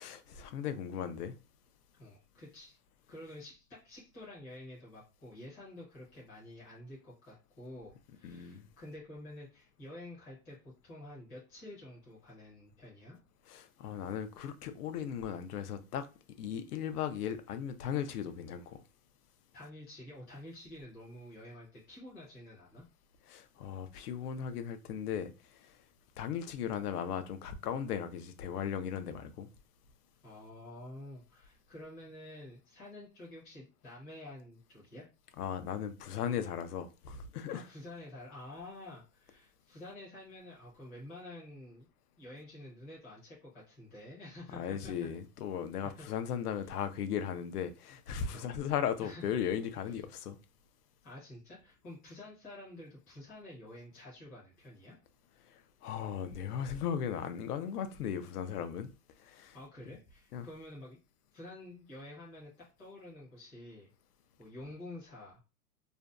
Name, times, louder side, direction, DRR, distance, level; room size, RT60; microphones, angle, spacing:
voice 1, 0.0-1.4 8.2-8.7 13.5-16.1 16.4-18.8 23.3-25.8 26.2-29.5 35.4-37.7 44.5-50.4 55.4-58.9 59.2-59.6 60.3-60.5, left 8 dB, 75° left, 0.5 m, -37 dB
voice 2, 2.0-2.8 3.1-13.2 19.5-22.8 30.2-35.1 37.5-41.9 42.2-45.1 45.8-46.1 48.3-48.7 49.0-49.2 49.9-50.0 51.0-55.0 59.5-61.0 61.3-62.5 62.8-63.9 64.4-65.4, left 1 dB, 10° left, 0.5 m, -49 dB
2.5 x 2.2 x 2.3 m
hypercardioid pair, 165°, 47 cm